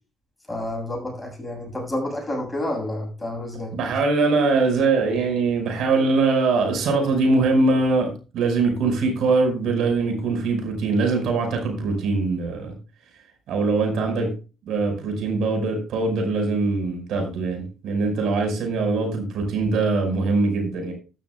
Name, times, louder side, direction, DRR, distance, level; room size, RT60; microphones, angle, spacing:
voice 1, 0.5-3.8, left 1 dB, 15° left, 0 dB, 7.3 m, -29 dB
voice 2, 3.7-12.7 13.5-14.3 14.7-20.9, right 3 dB, 80° right, 4 dB, 5.6 m, -22 dB
13.0 x 13.0 x 2.4 m, 0.34 s
cardioid pair, 90°, 0 cm